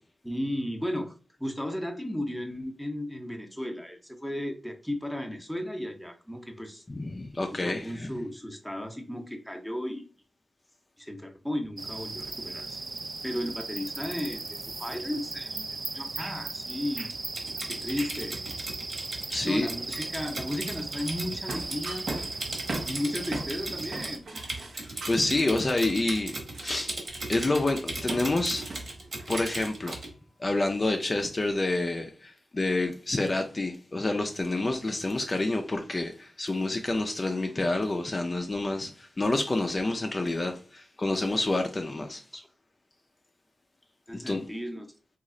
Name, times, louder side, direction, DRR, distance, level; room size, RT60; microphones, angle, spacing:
voice 1, 0.2-1.1 1.4-6.8 7.6-10.1 11.0-12.8 13.2-17.1 17.7-18.4 19.4-22.1 22.9-25.0 42.3-42.5 44.1-44.9, left 1 dB, ahead, 0.7 m, -35 dB
voice 2, 6.9-8.1 19.3-19.7 25.1-26.3 26.6-26.9 27.3-28.7 29.3-30.0 30.4-42.2 44.1-44.4, left 2 dB, 35° left, 0.4 m, -28 dB
sound 1, 11.8-24.2, right 3 dB, 45° right, 0.3 m, -37 dB
Typing, 17.1-30.1, right 2 dB, 60° right, 1.3 m, -37 dB
sound 2, 21.4-23.6 23.9-25.4 26.1-27.1 28.1-29.9, right 2 dB, 80° right, 0.8 m, -39 dB
3.0 x 2.4 x 3.7 m
wide cardioid pair, 90°, 0 cm